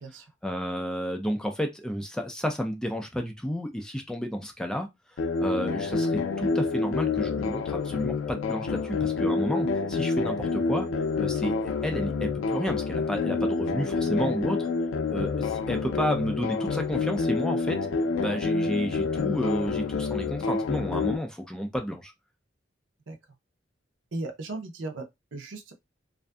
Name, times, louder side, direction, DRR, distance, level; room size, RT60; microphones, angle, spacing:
voice 1, 0.4-4.9 5.4-10.9 11.2-14.6 15.1-17.8 18.2-22.1, equal, 5° left, 0.4 m, -31 dB
sound 1, 5.2-21.2, left 4 dB, 80° left, 0.4 m, -28 dB
voice 2, 24.1-25.0 25.3-25.7, right 2 dB, 80° right, 0.6 m, -36 dB
2.5 x 2.5 x 2.2 m
head